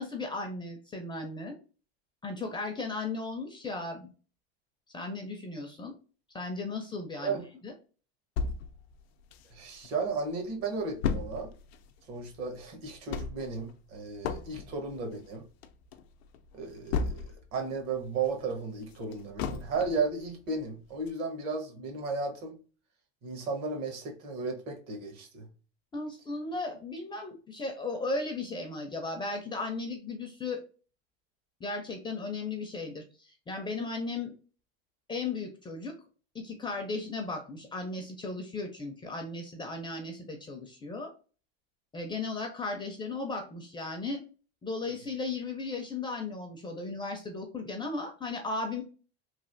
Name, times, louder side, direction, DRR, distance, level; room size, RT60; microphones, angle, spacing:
voice 1, 0.0-1.6 2.2-4.1 4.9-5.9 6.3-7.7 25.9-30.6 31.6-34.3 35.1-35.9 36.3-41.1 41.9-44.2 44.6-48.8, left 3 dB, 15° left, 0.4 m, -36 dB
sound 1, 8.4-9.9 10.3-10.4 10.6-17.6 18.0-20.1 20.6-20.7 21.1-21.2, left 5 dB, 85° left, 0.5 m, -35 dB
voice 2, 9.5-11.5 12.1-15.4 16.5-17.2 17.5-22.6 23.2-25.5, right 4 dB, 50° right, 1.0 m, -34 dB
3.2 x 2.4 x 2.5 m
supercardioid pair, 120°, 31 cm